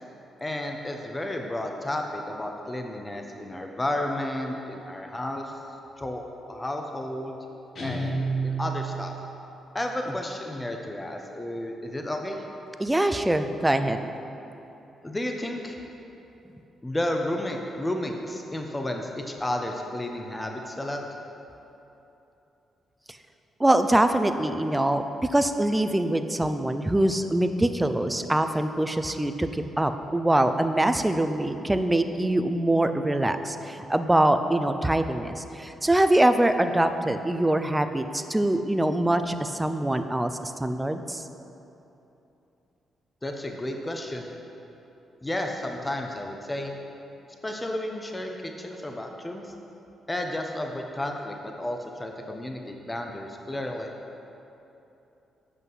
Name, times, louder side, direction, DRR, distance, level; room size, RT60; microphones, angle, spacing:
voice 1, 0.4-5.5 6.0-6.2 6.5-7.4 7.8-8.2 8.4-9.1 9.7-12.4 15.0-15.8 16.8-21.0 43.2-44.3 45.2-46.7 47.4-49.5 50.1-53.9, left 1 dB, 20° left, 2 dB, 0.9 m, -32 dB
Guitar, 7.8-9.5, right 3 dB, 60° left, 2.0 m, -30 dB
voice 2, 12.8-14.1 23.6-25.0 25.3-41.2, right 1 dB, 15° right, 9 dB, 0.6 m, -24 dB
8.1 x 6.1 x 5.6 m, 3.0 s
supercardioid pair, 50°, 0 cm